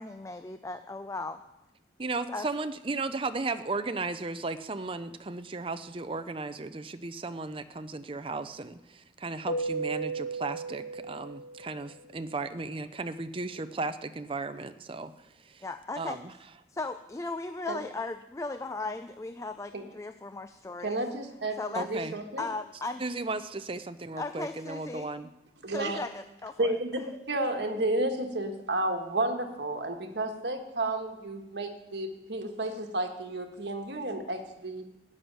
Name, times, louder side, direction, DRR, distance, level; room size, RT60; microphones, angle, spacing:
voice 1, 0.0-1.4 2.3-2.5 15.6-16.2 16.7-21.0 21.5-21.9 22.4-23.0 24.2-25.1 25.7-26.8, left 3 dB, 15° left, 9 dB, 0.4 m, -37 dB
voice 2, 2.0-15.6 16.0-16.3 21.7-22.1 23.0-25.3, right 3 dB, 30° right, 11 dB, 0.6 m, -35 dB
Keyboard (musical), 9.5-12.0, right 3 dB, 45° left, 1.6 m, -35 dB
voice 3, 20.8-22.4 25.6-26.0 26.6-34.8, right 2 dB, 65° right, 4 dB, 1.6 m, -32 dB
13.0 x 6.3 x 9.4 m, 0.92 s
head